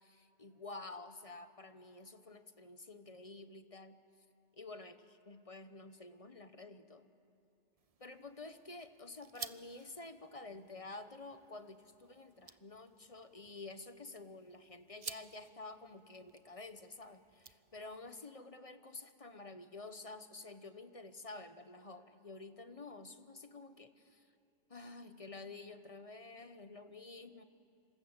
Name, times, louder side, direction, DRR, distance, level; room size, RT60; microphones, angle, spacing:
voice 1, 0.0-4.0 4.5-7.1 8.0-24.3 24.7-27.4, left 3 dB, 30° left, 10 dB, 1.1 m, -50 dB
sound 1, 7.8-18.1, right 6 dB, 35° right, 0.6 m, -54 dB
27.0 x 26.5 x 8.1 m, 2.7 s
omnidirectional pair, 1.3 m